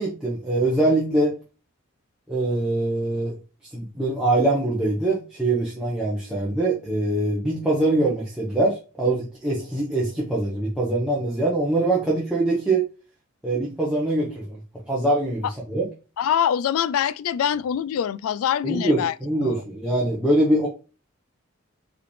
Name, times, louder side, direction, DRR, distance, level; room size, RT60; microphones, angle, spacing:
voice 1, 0.0-1.3 2.3-3.4 3.7-12.8 13.4-14.6 14.9-15.9 18.6-20.7, right 2 dB, 5° right, 0.9 m, -23 dB
voice 2, 16.2-19.1 19.4-19.6, left 9 dB, 85° left, 0.3 m, -24 dB
4.7 x 3.5 x 3.2 m
head